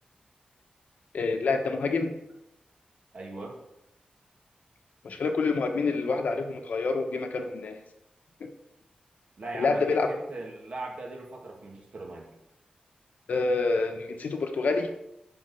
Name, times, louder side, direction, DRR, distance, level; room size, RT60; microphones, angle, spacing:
voice 1, 1.1-2.1 5.0-7.8 8.4-8.5 9.5-10.1 13.3-14.9, left 3 dB, 75° left, 5 dB, 1.2 m, -27 dB
voice 2, 3.1-3.5 9.4-12.3, right 2 dB, 55° right, -1 dB, 2.4 m, -39 dB
11.5 x 4.4 x 7.1 m, 0.86 s
wide cardioid pair, 175°, 3 cm